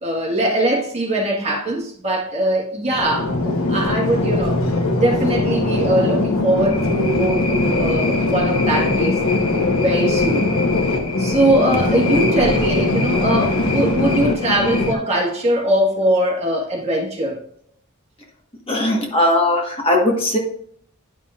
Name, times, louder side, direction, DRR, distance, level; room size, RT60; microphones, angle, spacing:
voice 1, 0.0-4.6 5.0-9.2 9.5-10.5 11.2-17.4, right 1 dB, 30° right, 1.6 m, -21 dB
sound 1, 2.9-14.9, left 2 dB, 75° left, 1.1 m, -20 dB
voice 2, 18.7-20.4, left 1 dB, 25° left, 1.4 m, -18 dB
10.5 x 5.6 x 2.5 m
head